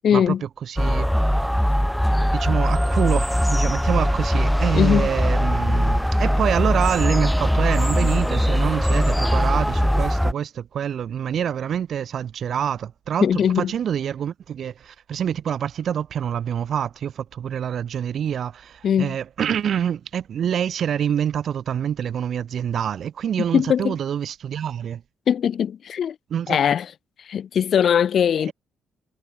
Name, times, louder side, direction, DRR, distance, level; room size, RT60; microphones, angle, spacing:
voice 1, 0.0-0.4 4.7-5.1 13.2-13.7 18.8-19.2 23.5-24.0 25.3-26.2 26.5-26.9 27.2-28.5, left 8 dB, 60° left, 0.3 m, -20 dB
voice 2, 0.6-1.6 2.3-25.0 26.3-26.6 28.5-28.6, right 9 dB, 60° right, 1.9 m, -26 dB
sound 1, 0.8-10.3, equal, ahead, 0.6 m, -20 dB
cardioid pair, 90°, 0 cm